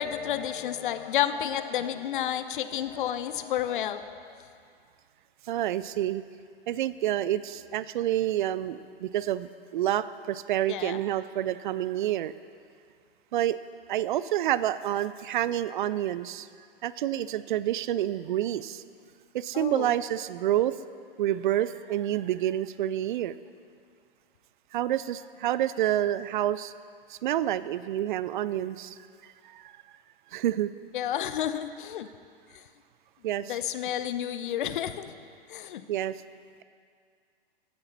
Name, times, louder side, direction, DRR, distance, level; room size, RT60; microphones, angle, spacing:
voice 1, 0.0-4.4 10.7-11.0 19.5-19.9 30.9-32.1 32.5-32.6 33.5-35.2 35.5-35.9, left 10 dB, 55° left, 12 dB, 0.7 m, -31 dB
voice 2, 5.5-6.2 6.7-12.3 13.3-13.6 13.9-16.5 16.8-18.8 19.3-20.8 21.2-23.4 24.7-26.7 27.1-29.0 29.2-29.7 30.3-30.7 33.2-33.6 35.9-36.2, right 12 dB, 55° right, 16 dB, 0.5 m, -28 dB
15.5 x 10.5 x 4.3 m, 2.2 s
figure-of-eight pair, 100°, 30 cm